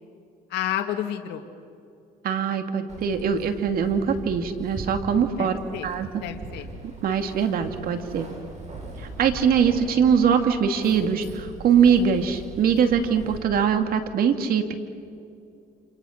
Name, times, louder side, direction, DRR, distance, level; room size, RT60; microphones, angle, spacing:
voice 1, 0.5-1.4 5.4-5.9 6.2-6.7, left 11 dB, 80° left, 4 dB, 1.7 m, -30 dB
voice 2, 2.2-5.6 5.8-6.2 6.8-8.3 9.0-14.7, right 7 dB, 60° right, 6 dB, 2.5 m, -22 dB
Keys jangling, 2.9-13.4, right 2 dB, 45° right, 7.4 m, -40 dB
29.0 x 27.5 x 6.6 m, 2.6 s
cardioid pair, 110°, 17 cm